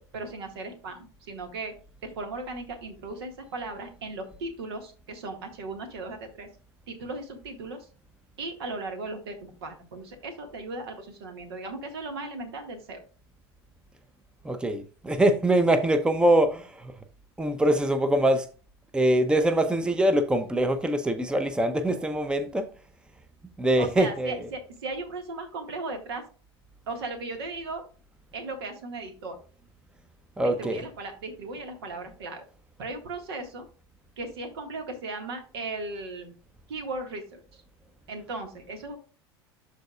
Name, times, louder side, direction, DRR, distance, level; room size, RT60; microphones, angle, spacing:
voice 1, 0.1-1.7 2.0-6.5 6.9-7.9 8.4-13.0 23.8-26.2 26.9-27.8 28.3-29.4 30.4-32.4 32.8-33.7 34.2-36.3 36.7-37.6 38.1-39.0, right 3 dB, 70° right, 1.9 m, -37 dB
voice 2, 14.4-16.9 17.4-18.5 18.9-22.7 23.6-24.4 30.4-30.9, right 1 dB, 5° right, 0.7 m, -23 dB
12.5 x 4.1 x 2.4 m
hypercardioid pair, 85°, 14 cm